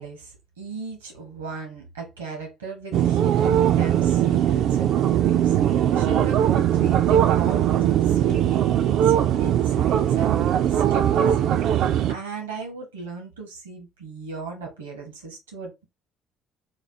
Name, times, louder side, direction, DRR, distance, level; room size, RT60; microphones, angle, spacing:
voice 1, 0.0-15.8, right 4 dB, 80° right, 1.0 m, -37 dB
sound 1, 2.9-12.1, right 10 dB, 60° right, 0.4 m, -20 dB
4.3 x 2.3 x 4.4 m
figure-of-eight pair, 50°, 0 cm